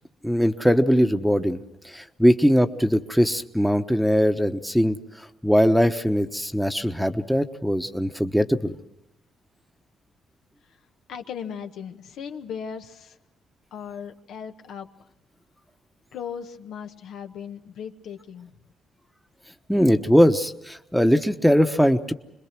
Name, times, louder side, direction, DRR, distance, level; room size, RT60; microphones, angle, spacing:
voice 1, 0.2-1.6 1.8-8.7 19.7-22.1, equal, ahead, 8 dB, 1.1 m, -21 dB
voice 2, 11.1-13.2 13.7-14.9 16.1-18.5, left 7 dB, 80° left, 5 dB, 1.4 m, -37 dB
26.5 x 21.0 x 6.1 m, 0.89 s
cardioid pair, 90°, 0 cm